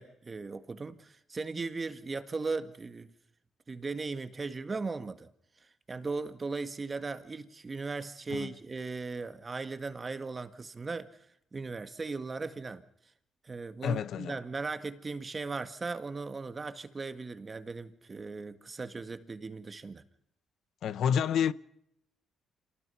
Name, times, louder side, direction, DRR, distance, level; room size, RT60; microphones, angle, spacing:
voice 1, 0.0-3.1 3.7-5.3 5.9-11.1 11.5-12.8 13.4-20.0, right 4 dB, 30° right, 1.8 m, -37 dB
voice 2, 13.8-14.3 20.8-21.5, left 8 dB, 70° left, 0.8 m, -28 dB
27.0 x 19.5 x 5.8 m
cardioid pair, 90°, 0 cm